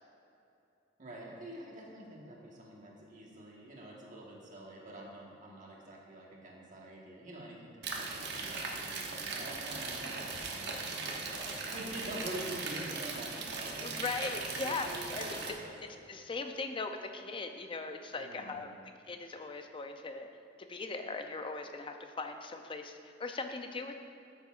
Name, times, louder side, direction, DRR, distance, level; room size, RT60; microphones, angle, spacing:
voice 1, 1.0-13.9 14.5-15.7 18.1-18.7, right 1 dB, 45° right, -3 dB, 1.4 m, -46 dB
sound 1, 7.8-15.5, right 4 dB, 60° right, 0.9 m, -39 dB
voice 2, 13.8-15.5 16.1-18.7 19.1-20.3 20.7-24.0, left 3 dB, 25° left, 6 dB, 0.5 m, -39 dB
13.0 x 6.6 x 2.5 m, 2.6 s
head